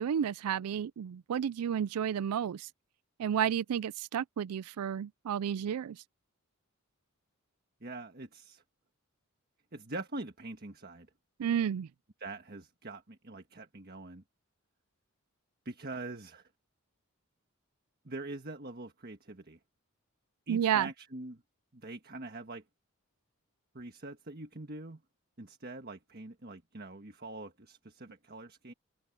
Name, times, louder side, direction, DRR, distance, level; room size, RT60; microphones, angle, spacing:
voice 1, 0.0-2.7 3.2-6.0 11.4-11.9 20.5-20.9, right 8 dB, 85° right, 0.4 m, -31 dB
voice 2, 7.8-8.6 9.7-11.1 12.2-14.2 15.6-16.5 18.0-19.6 20.5-21.4 21.7-22.6 23.7-25.0 25.4-28.7, right 2 dB, 45° right, 1.5 m, -44 dB
head